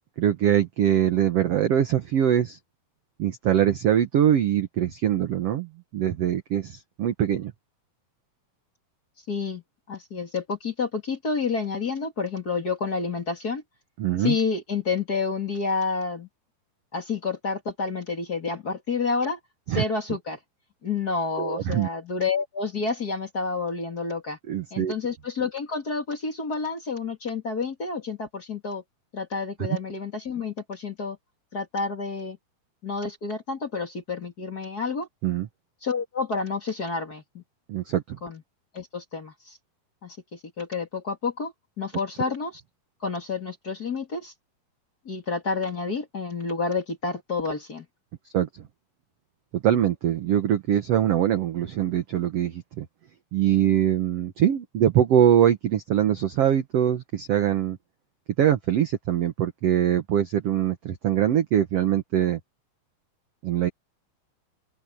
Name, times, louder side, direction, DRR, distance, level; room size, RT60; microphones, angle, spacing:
voice 1, 0.2-2.6 3.2-7.5 14.0-14.3 19.7-19.8 21.4-21.9 24.5-24.9 35.2-35.5 37.7-38.2 48.3-48.5 49.6-52.9 53.3-57.8 58.4-62.4 63.4-63.7, right 10 dB, 75° right, 1.4 m, -23 dB
voice 2, 9.3-9.6 9.9-13.6 14.2-16.3 16.9-19.4 19.7-20.4 20.8-24.4 24.7-28.8 29.1-31.2 31.5-32.4 32.8-35.1 35.8-37.4 38.2-38.4 38.7-39.6 40.0-42.6 43.0-44.3 45.0-47.9, left 4 dB, 30° left, 2.2 m, -29 dB
open air
omnidirectional pair, 4.4 m